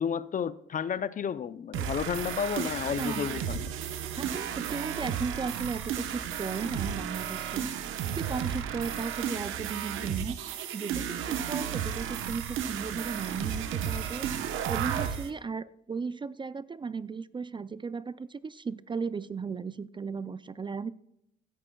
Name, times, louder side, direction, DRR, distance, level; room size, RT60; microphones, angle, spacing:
voice 1, 0.0-3.7, left 7 dB, 40° left, 0.5 m, -32 dB
sound 1, 1.7-15.3, right 9 dB, 85° right, 1.0 m, -33 dB
voice 2, 2.9-3.3 4.2-7.7 8.1-14.3 14.7-20.9, right 5 dB, 25° right, 0.4 m, -36 dB
16.0 x 9.5 x 2.3 m
cardioid pair, 90°, 20 cm